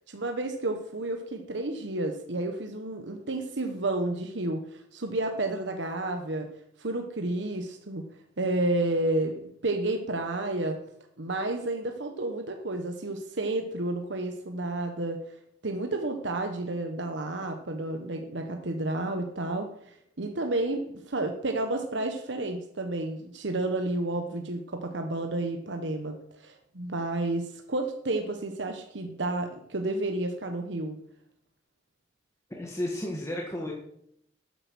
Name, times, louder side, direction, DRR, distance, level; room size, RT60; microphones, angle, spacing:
voice 1, 0.1-6.5 6.8-8.1 8.4-10.8 11.2-15.2 15.6-31.0, right 2 dB, 75° right, 5 dB, 1.2 m, -31 dB
voice 2, 32.5-33.7, left 1 dB, 15° left, -1 dB, 1.6 m, -33 dB
12.5 x 8.8 x 6.2 m, 0.71 s
head